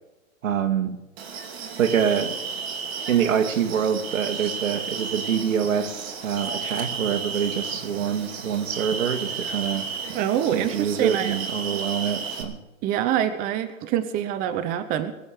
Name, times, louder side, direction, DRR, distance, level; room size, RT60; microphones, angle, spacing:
voice 1, 0.4-1.0 1.8-2.4 3.1-9.9 10.5-12.6, right 8 dB, 70° right, 8 dB, 2.0 m, -25 dB
sound 1, 1.2-12.4, right 5 dB, 45° right, 2.9 m, -33 dB
voice 2, 10.1-11.3 12.8-15.1, right 10 dB, 20° right, 12 dB, 0.7 m, -25 dB
22.0 x 7.4 x 6.6 m, 1.0 s
hypercardioid pair, 140°, 40 cm